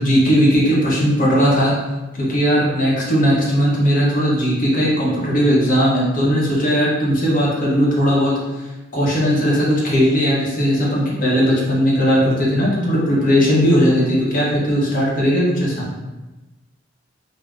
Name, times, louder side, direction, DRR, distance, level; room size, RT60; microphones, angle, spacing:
voice 1, 0.0-1.7 2.2-8.3 8.9-15.9, equal, 45° left, -5 dB, 0.8 m, -17 dB
3.3 x 2.0 x 2.4 m, 1.1 s
head